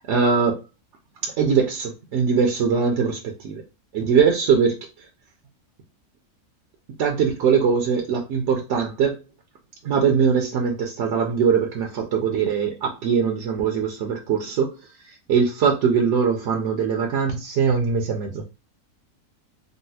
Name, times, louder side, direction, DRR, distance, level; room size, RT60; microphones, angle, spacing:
voice 1, 0.1-0.6 1.2-3.6 3.9-5.1 7.0-9.2 9.8-18.4, right 6 dB, 65° right, 0.7 m, -22 dB
3.8 x 2.0 x 2.7 m
omnidirectional pair, 1.6 m